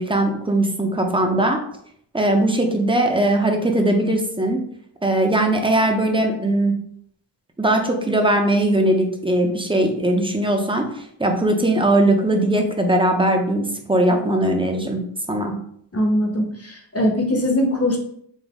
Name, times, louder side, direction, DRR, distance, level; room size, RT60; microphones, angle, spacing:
voice 1, 0.0-1.6 2.1-4.6 5.0-6.8 7.6-15.0 15.3-15.5, right 1 dB, 10° right, 3 dB, 0.7 m, -20 dB
voice 2, 15.9-18.0, left 1 dB, 35° left, 1 dB, 1.0 m, -21 dB
4.0 x 2.6 x 3.6 m, 0.68 s
wide cardioid pair, 55°, 44 cm